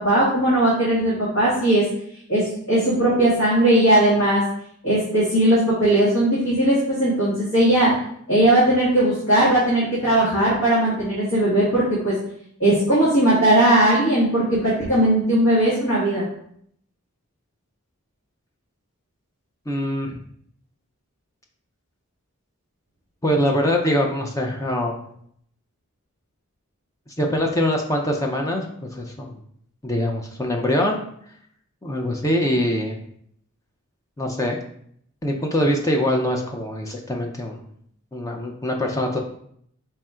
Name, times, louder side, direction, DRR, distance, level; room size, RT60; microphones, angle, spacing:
voice 1, 0.0-1.8 2.3-4.4 4.8-7.9 8.3-12.1 12.6-16.3, right 1 dB, 65° left, -9 dB, 1.7 m, -18 dB
voice 2, 19.7-20.2 23.2-25.0 27.2-29.4 29.8-31.0 31.8-33.0 34.2-34.6 35.2-37.6 38.1-39.2, left 1 dB, 15° left, 1 dB, 0.4 m, -23 dB
4.4 x 2.4 x 4.3 m, 0.67 s
head